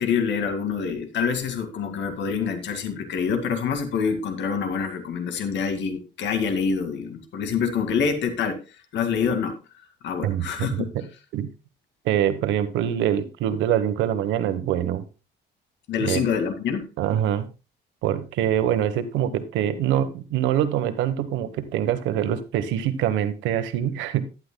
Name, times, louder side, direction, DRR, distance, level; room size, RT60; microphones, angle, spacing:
voice 1, 0.0-8.6 8.9-9.6 10.0-10.9 15.9-16.9, left 6 dB, 75° left, 7 dB, 2.0 m, -26 dB
voice 2, 10.2-11.1 11.3-11.5 12.0-15.0 16.0-16.2 17.0-17.5 18.0-24.2, right 10 dB, 90° right, 12 dB, 1.1 m, -24 dB
11.5 x 10.5 x 2.2 m, 0.32 s
cardioid pair, 90°, 19 cm